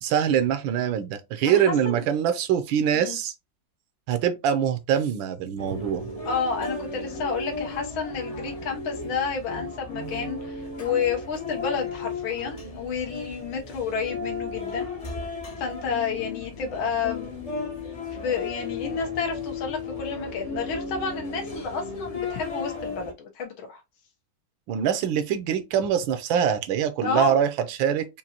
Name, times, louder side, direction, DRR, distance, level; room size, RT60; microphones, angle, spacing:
voice 1, 0.0-3.3 4.1-6.1 24.7-28.1, right 9 dB, 80° right, 1.4 m, -24 dB
voice 2, 1.4-2.0 2.9-3.2 6.2-14.9 15.6-17.3 18.2-23.8 27.0-27.3, left 5 dB, 90° left, 1.9 m, -30 dB
sound 1, 5.6-23.1, left 4 dB, 45° left, 0.4 m, -35 dB
5.2 x 2.6 x 2.8 m
omnidirectional pair, 2.1 m